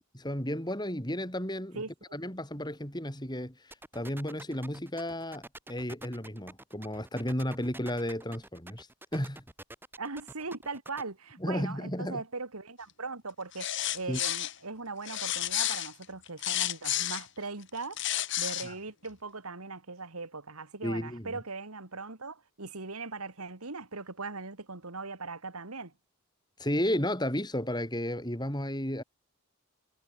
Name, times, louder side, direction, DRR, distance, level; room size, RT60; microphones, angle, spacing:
voice 1, 0.1-1.8 2.1-3.5 3.9-5.4 5.7-8.9 9.1-9.4 11.4-12.2 14.1-14.2 18.6-18.7 20.8-21.3 26.6-29.0, left 1 dB, 20° left, 5.6 m, -33 dB
voice 2, 1.7-2.2 10.0-25.9, right 3 dB, 80° right, 2.5 m, -40 dB
sound 1, 3.7-11.0, right 2 dB, 10° right, 5.5 m, -47 dB
sound 2, 13.5-14.5 15.1-17.2 17.8-18.7, left 13 dB, 55° left, 2.2 m, -31 dB
head